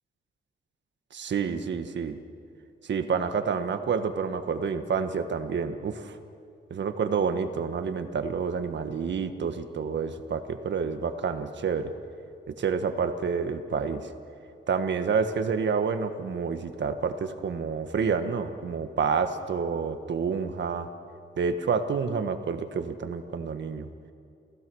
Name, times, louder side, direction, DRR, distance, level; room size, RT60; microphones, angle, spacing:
voice 1, 1.1-2.2 2.8-6.2 6.7-11.9 12.5-14.1 14.7-20.9 21.4-23.9, right 6 dB, 70° right, 8 dB, 1.5 m, -29 dB
29.5 x 16.0 x 6.3 m, 2.6 s
wide cardioid pair, 115°, 19 cm